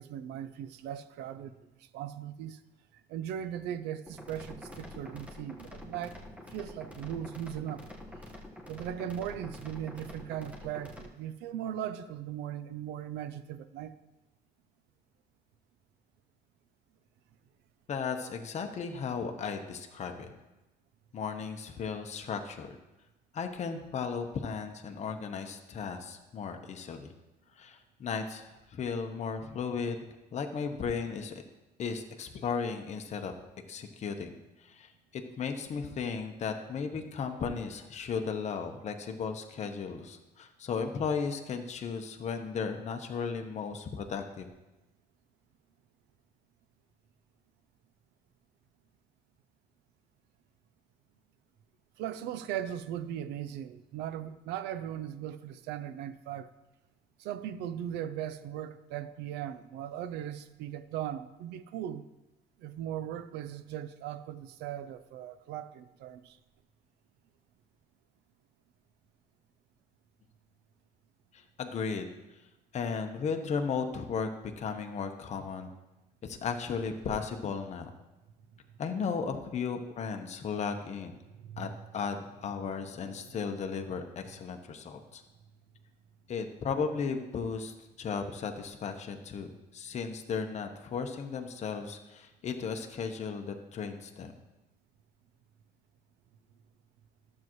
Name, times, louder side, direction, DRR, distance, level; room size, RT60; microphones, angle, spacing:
voice 1, 0.0-2.6 3.1-6.2 6.5-7.8 8.7-13.9 52.0-56.5 57.2-62.0 62.6-66.4 81.3-81.7 83.2-83.4, right 10 dB, 90° right, 0.5 m, -38 dB
sound 1, 4.1-11.1, left 1 dB, 10° right, 1.3 m, -47 dB
voice 2, 17.9-20.3 21.1-22.7 23.3-27.1 27.6-31.4 31.8-33.3 33.7-34.3 34.6-44.5 71.3-72.1 72.7-75.7 76.2-77.9 78.8-81.1 81.6-85.2 86.3-89.5 89.7-94.4, left 5 dB, 40° left, 0.9 m, -35 dB
12.0 x 7.4 x 3.1 m
cardioid pair, 110°, 17 cm